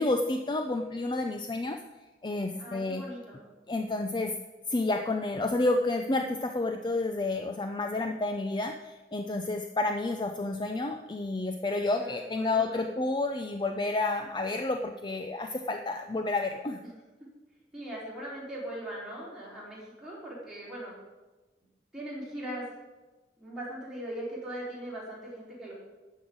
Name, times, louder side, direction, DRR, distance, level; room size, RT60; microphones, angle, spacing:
voice 1, 0.0-1.8 2.2-3.0 3.7-4.3 4.7-16.8, left 2 dB, 25° left, 5 dB, 0.5 m, -30 dB
voice 2, 2.6-3.5 11.9-12.8 16.8-17.0 17.7-20.9 21.9-22.6 23.4-25.7, right 1 dB, 5° right, -7 dB, 4.3 m, -40 dB
12.5 x 5.6 x 8.6 m, 1.2 s
head